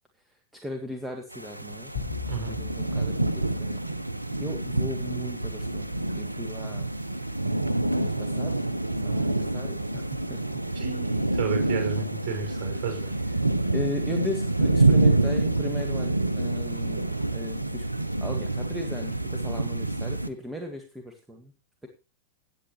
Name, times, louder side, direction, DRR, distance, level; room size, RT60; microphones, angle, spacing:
voice 1, 0.5-1.9 2.5-3.9 4.4-6.9 8.0-8.6 9.0-10.0 10.3-10.4 13.7-17.9 18.2-21.5 21.8-21.9, left 1 dB, 5° right, 3 dB, 1.8 m, -37 dB
sound 1, 1.3-20.3, right 2 dB, 85° right, 0.7 m, -27 dB
sound 2, 1.9-4.5, left 6 dB, 70° left, 4.8 m, -39 dB
voice 2, 2.3-2.6 10.7-13.4, right 5 dB, 40° right, 3 dB, 6.1 m, -32 dB
16.5 x 8.6 x 3.2 m, 0.30 s
figure-of-eight pair, 90°, 0 cm